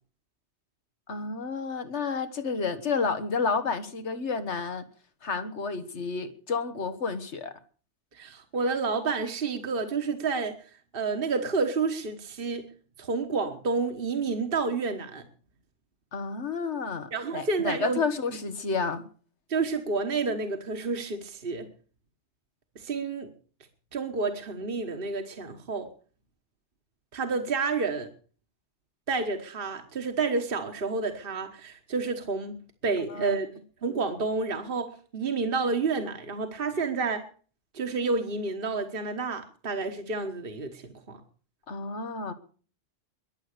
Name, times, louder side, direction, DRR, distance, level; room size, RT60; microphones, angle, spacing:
voice 1, 1.1-4.8 5.2-7.5 16.1-19.0 33.1-33.4 41.7-42.3, left 4 dB, 75° left, 11 dB, 1.8 m, -30 dB
voice 2, 8.1-12.6 13.0-15.2 17.1-18.0 19.5-21.7 22.7-23.3 23.9-25.9 27.1-28.1 29.1-33.5 33.8-37.3 37.7-41.2, right 4 dB, 55° right, 6 dB, 1.6 m, -30 dB
22.0 x 8.0 x 6.7 m, 0.42 s
omnidirectional pair, 1.2 m